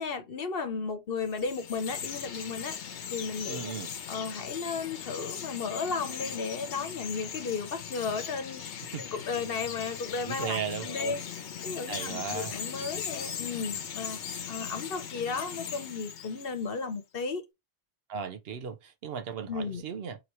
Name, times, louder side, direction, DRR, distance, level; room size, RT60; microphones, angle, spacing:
voice 1, 0.0-2.8 3.1-3.7 4.1-11.2 11.6-14.2 14.5-17.4 19.5-19.8, left 5 dB, 60° left, 1.0 m, -34 dB
Chirp tweet, 1.2-16.8, left 8 dB, 90° left, 1.0 m, -39 dB
voice 2, 3.5-3.9 8.9-9.0 10.2-11.1 11.9-12.6 18.1-20.2, right 7 dB, 65° right, 0.8 m, -36 dB
3.1 x 2.9 x 4.2 m
omnidirectional pair, 1.1 m